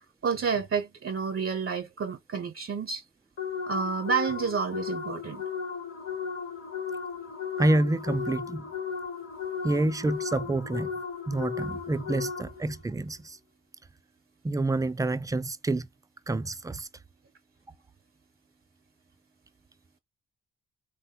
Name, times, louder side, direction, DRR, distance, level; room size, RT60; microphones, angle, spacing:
voice 1, 0.2-3.0 3.7-5.4, right 5 dB, 45° right, 0.7 m, -29 dB
sound 1, 3.4-12.8, left 6 dB, 45° left, 1.0 m, -35 dB
voice 2, 7.6-8.7 9.6-10.9 11.3-13.4 14.4-15.9 16.3-16.9, right 2 dB, 10° right, 0.3 m, -28 dB
3.3 x 2.1 x 2.7 m
supercardioid pair, 55°, 31 cm